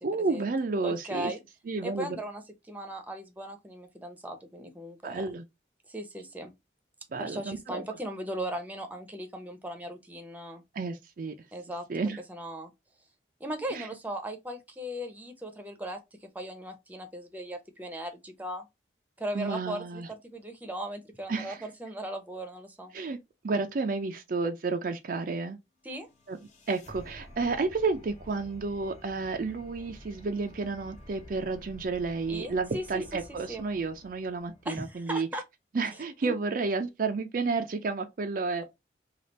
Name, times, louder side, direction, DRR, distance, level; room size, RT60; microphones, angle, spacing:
voice 1, 0.0-1.3 1.7-2.2 5.0-5.4 7.1-7.8 10.7-11.3 11.9-12.2 13.7-13.9 19.3-20.1 21.3-21.6 22.9-23.2 23.4-25.6 26.3-26.4 26.7-35.3 35.7-38.6, right 4 dB, 50° right, 0.4 m, -31 dB
voice 2, 0.8-1.4 1.8-2.4 2.7-5.2 5.9-6.5 7.2-10.6 11.5-11.8 12.3-12.7 13.4-18.6 19.2-22.9 25.8-26.1 32.3-33.0 33.3-33.7 34.7-35.4 36.2-36.3, right 1 dB, 10° right, 0.7 m, -38 dB
sound 1, 25.8-35.0, left 1 dB, 40° left, 1.0 m, -50 dB
3.3 x 2.4 x 4.0 m
head